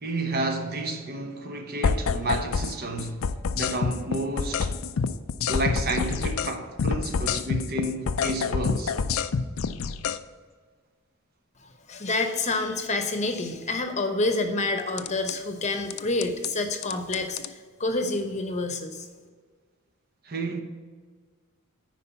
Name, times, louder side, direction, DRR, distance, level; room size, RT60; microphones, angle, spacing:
voice 1, 0.0-3.3 3.5-4.8 5.5-8.9 20.2-20.6, right 2 dB, 45° right, 1.0 m, -31 dB
sound 1, 1.8-2.7 3.0-6.5 6.8-10.2 15.0-15.3 15.9-16.5 16.8-17.5, left 5 dB, 70° left, 0.4 m, -27 dB
voice 2, 11.6-19.1, left 2 dB, 35° left, 0.9 m, -28 dB
9.7 x 5.0 x 5.7 m
head